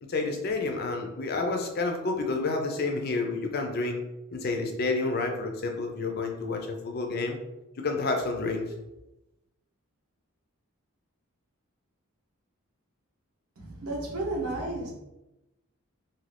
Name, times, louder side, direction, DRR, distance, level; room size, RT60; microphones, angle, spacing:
voice 1, 0.1-4.0 4.3-7.4 7.8-8.7, left 3 dB, 45° left, 3 dB, 0.4 m, -29 dB
voice 2, 13.6-14.9, right 2 dB, 90° right, -2 dB, 0.9 m, -32 dB
2.6 x 2.5 x 3.3 m, 0.95 s
head